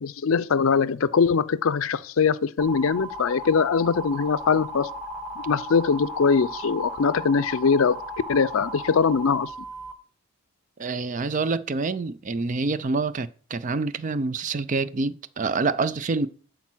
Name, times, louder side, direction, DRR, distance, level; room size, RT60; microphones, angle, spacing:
voice 1, 0.0-4.9 5.5-8.0 8.3-9.5, left 5 dB, 70° left, 0.5 m, -22 dB
Amtor Navtex, 2.6-9.9, equal, 5° right, 0.8 m, -36 dB
voice 2, 10.8-16.3, right 3 dB, 35° right, 0.4 m, -27 dB
11.5 x 4.2 x 6.1 m
head